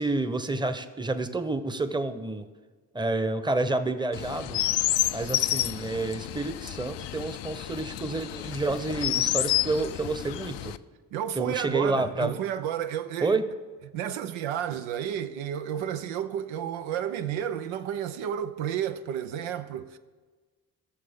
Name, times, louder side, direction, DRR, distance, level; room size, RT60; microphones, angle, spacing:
voice 1, 0.0-2.4 2.9-4.6 5.1-10.7 11.3-12.4 13.2-13.4, right 2 dB, 10° right, 0.8 m, -29 dB
Chirp tweet, 4.1-10.8, left 14 dB, 65° left, 0.5 m, -30 dB
voice 2, 11.1-13.4 13.9-20.0, right 9 dB, 85° right, 0.6 m, -31 dB
16.0 x 6.8 x 3.6 m
supercardioid pair, 45°, 46 cm